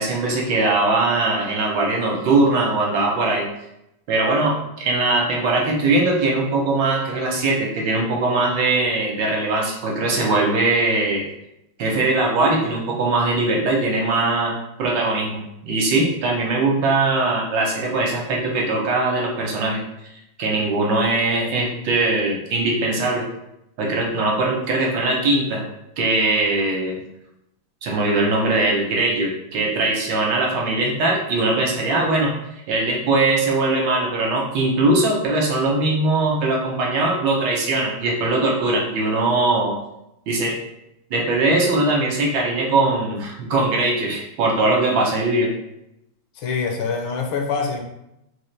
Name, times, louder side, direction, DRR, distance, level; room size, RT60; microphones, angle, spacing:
voice 1, 0.0-3.5 4.1-11.3 11.8-15.4 15.6-19.8 20.4-23.3 23.8-25.7 26.0-27.0 27.8-32.3 32.7-39.8 40.3-40.6 41.1-45.5, right 2 dB, 70° right, -1 dB, 1.3 m, -21 dB
voice 2, 46.4-47.8, left 5 dB, 85° left, 3 dB, 1.4 m, -25 dB
4.2 x 2.5 x 3.1 m, 0.84 s
omnidirectional pair, 2.3 m